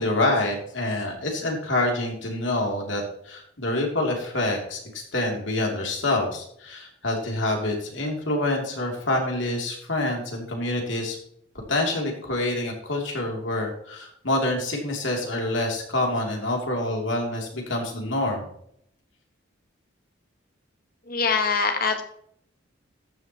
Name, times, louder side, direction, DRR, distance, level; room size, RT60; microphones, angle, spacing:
voice 1, 0.0-11.2 11.7-18.5, left 2 dB, 70° left, 1 dB, 3.1 m, -27 dB
voice 2, 21.1-22.0, left 5 dB, 50° left, 5 dB, 1.6 m, -23 dB
14.0 x 7.6 x 3.0 m, 0.69 s
head